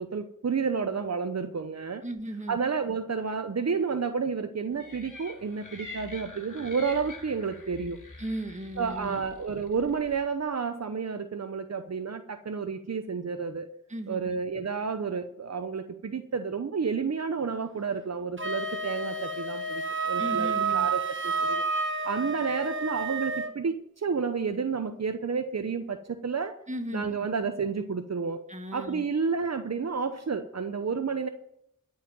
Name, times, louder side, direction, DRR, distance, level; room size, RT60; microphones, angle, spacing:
voice 1, 0.0-2.0 2.5-8.0 8.8-13.7 14.1-21.6 22.0-26.6 26.9-28.4 28.7-31.3, right 5 dB, 55° right, 8 dB, 0.9 m, -30 dB
voice 2, 2.0-2.6 8.2-9.2 13.9-14.4 20.2-20.9 26.7-27.1 28.5-29.0, right 1 dB, 20° right, 5 dB, 1.7 m, -36 dB
sound 1, 4.8-10.2, left 2 dB, 75° left, 3.0 m, -46 dB
Wind instrument woodwind instrument, 18.4-23.6, right 4 dB, 40° right, 1.4 m, -30 dB
13.5 x 5.7 x 9.2 m, 0.76 s
wide cardioid pair, 65°, 31 cm